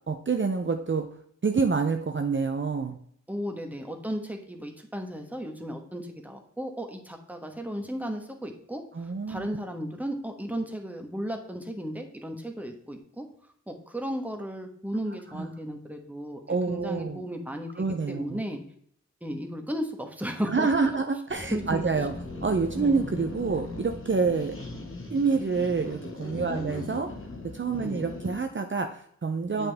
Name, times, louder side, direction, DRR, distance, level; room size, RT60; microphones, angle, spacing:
voice 1, 0.1-1.1 1.4-3.0 8.9-9.5 15.3-15.5 16.5-17.2 17.8-18.4 20.4-22.1 22.4-24.5 25.1-27.1 27.4-29.7, right 4 dB, 40° right, 5 dB, 0.6 m, -27 dB
voice 2, 3.3-8.8 9.3-13.3 13.7-18.6 19.2-20.7 21.5-21.8 22.7-23.0 24.3-24.4 26.5-26.7 27.8-28.0 29.6-29.7, equal, 5° right, 4 dB, 1.2 m, -35 dB
sound 1, 21.3-28.5, left 2 dB, 45° left, 1.6 m, -39 dB
8.1 x 5.4 x 3.4 m, 0.65 s
wide cardioid pair, 70°, 30 cm